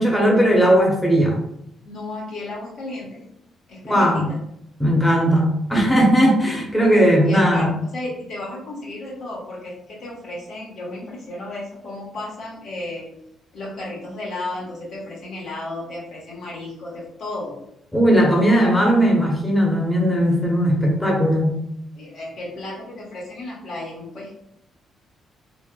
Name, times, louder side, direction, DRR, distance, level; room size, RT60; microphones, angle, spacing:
voice 1, 0.0-1.4 3.9-4.3 4.8-7.7 17.9-21.5, equal, 10° left, -2 dB, 0.7 m, -17 dB
voice 2, 1.8-3.3 3.7-4.4 7.2-13.1 13.5-17.6 21.9-24.4, left 2 dB, 70° left, -5 dB, 1.1 m, -33 dB
3.2 x 2.1 x 2.2 m, 0.77 s
cardioid pair, 90°, 0 cm